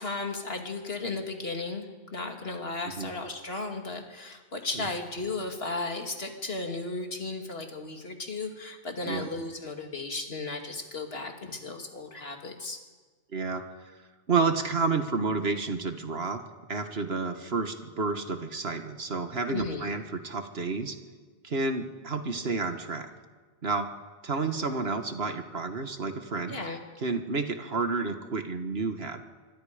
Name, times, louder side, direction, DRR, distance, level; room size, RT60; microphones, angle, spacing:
voice 1, 0.0-1.9 2.1-12.8 19.5-19.9 26.5-26.8, left 3 dB, 75° left, 3 dB, 2.6 m, -35 dB
voice 2, 13.3-13.6 14.3-16.4 16.7-21.0 21.4-23.1 23.6-23.9 24.2-26.6 27.0-29.2, right 4 dB, 80° right, 7 dB, 1.9 m, -30 dB
26.0 x 23.5 x 5.1 m, 1.4 s
omnidirectional pair, 1.0 m